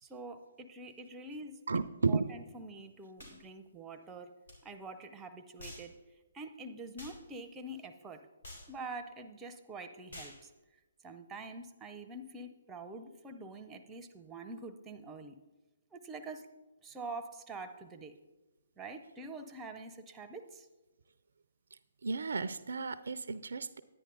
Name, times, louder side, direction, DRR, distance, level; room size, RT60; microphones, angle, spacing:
voice 1, 0.0-4.3 4.6-6.0 6.3-8.2 8.7-10.5 11.0-15.4 15.9-16.5 16.8-18.1 18.8-20.7, right 2 dB, 15° right, 8 dB, 0.6 m, -46 dB
voice 2, 1.7-2.3 22.0-23.8, right 4 dB, 70° right, 14 dB, 0.4 m, -33 dB
sound 1, 3.2-3.4 4.5-4.6 5.6-5.9 7.0-7.2 8.4-8.7 10.1-10.4, left 1 dB, 80° left, 3.5 m, -48 dB
10.0 x 9.9 x 3.8 m, 1.1 s
figure-of-eight pair, 140°, 0 cm